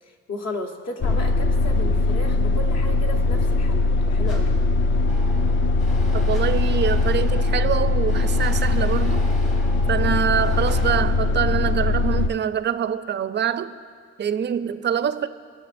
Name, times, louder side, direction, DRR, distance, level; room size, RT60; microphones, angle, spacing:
voice 1, 0.0-4.5, left 1 dB, 55° left, 2 dB, 1.2 m, -34 dB
sound 1, 1.0-12.3, left 3 dB, 40° left, 0.4 m, -21 dB
sound 2, 4.2-4.7 6.2-6.7 8.3-8.8 10.6-11.1, left 1 dB, 75° left, 3.0 m, -47 dB
sound 3, 5.1-11.0, left 1 dB, 25° left, 1.1 m, -40 dB
voice 2, 6.1-9.3 9.9-13.7 14.2-15.3, right 8 dB, 35° right, 12 dB, 0.4 m, -25 dB
21.0 x 7.1 x 2.6 m, 2.1 s
cardioid pair, 90°, 30 cm